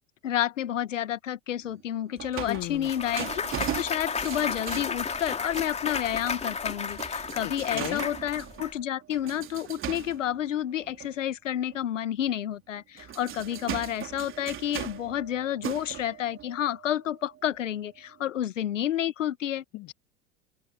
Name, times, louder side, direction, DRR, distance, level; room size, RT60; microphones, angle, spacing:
voice 1, 0.2-19.6, left 11 dB, 70° left, 1.8 m, -30 dB
sound 1, 1.6-6.0 6.2-6.6 7.0-11.2 11.7-11.8 12.8-17.7 18.2-18.3, right 11 dB, 30° right, 3.5 m, -39 dB
voice 2, 2.5-2.9 7.4-8.1 19.7-19.9, left 18 dB, 40° left, 2.0 m, -35 dB
Clapping / Cheering / Applause, 2.5-8.7, left 5 dB, 15° left, 3.1 m, -33 dB
open air
figure-of-eight pair, 85°, 39 cm